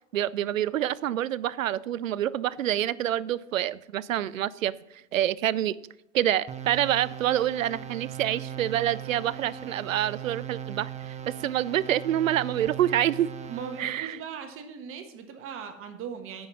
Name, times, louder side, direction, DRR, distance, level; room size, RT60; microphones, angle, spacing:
voice 1, 0.1-5.8 6.1-13.3 13.8-14.2, right 12 dB, 80° right, 19 dB, 0.5 m, -27 dB
sound 1, 6.5-14.0, right 9 dB, 15° right, 0.7 m, -39 dB
voice 2, 13.5-16.5, right 7 dB, 35° right, 7 dB, 1.4 m, -39 dB
9.7 x 5.4 x 6.1 m, 0.84 s
figure-of-eight pair, 95°, 39 cm